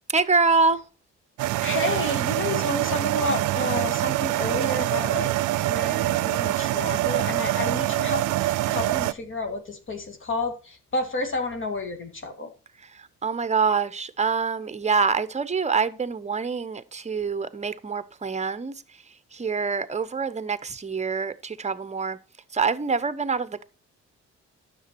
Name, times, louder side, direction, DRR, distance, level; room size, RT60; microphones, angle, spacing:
voice 1, 0.1-0.8 13.2-18.7 19.3-22.2 22.5-23.6, right 5 dB, 25° right, 0.9 m, -25 dB
sound 1, 1.4-9.1, right 16 dB, 80° right, 0.5 m, -25 dB
voice 2, 1.6-5.3 5.6-8.2 8.7-12.5, left 2 dB, 40° left, 2.0 m, -30 dB
10.0 x 6.9 x 4.2 m
cardioid pair, 90°, 30 cm